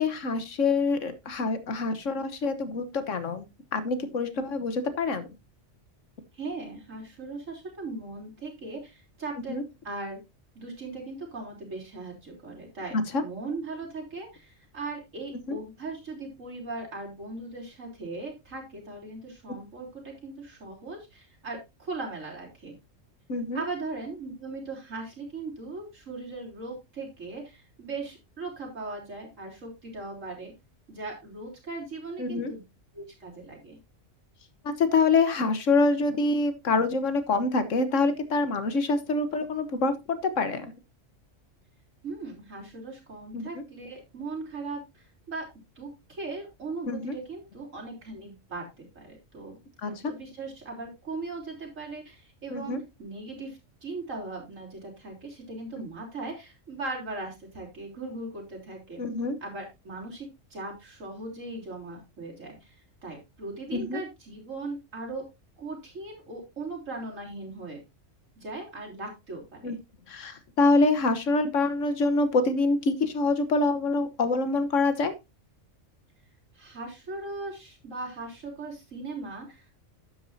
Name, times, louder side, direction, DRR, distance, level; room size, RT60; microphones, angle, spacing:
voice 1, 0.0-3.5 3.7-5.3 9.5-9.6 13.1-13.2 15.5-15.6 23.3-23.6 32.2-32.5 34.6-40.7 43.3-43.5 46.9-47.1 49.8-49.9 52.5-52.8 59.0-59.4 63.7-64.0 69.6-69.8 70.1-75.1, left 3 dB, 75° left, 11 dB, 1.5 m, -26 dB
voice 2, 6.3-9.6 9.8-10.2 10.6-12.9 13.2-22.8 23.5-30.5 30.9-32.6 32.9-33.8 42.0-45.4 45.8-49.6 49.8-59.0 59.4-62.8 63.0-65.2 65.6-67.8 68.4-69.8 76.5-79.7, right 3 dB, 80° right, -1 dB, 3.9 m, -39 dB
11.5 x 8.4 x 2.7 m, 0.23 s
omnidirectional pair, 1.3 m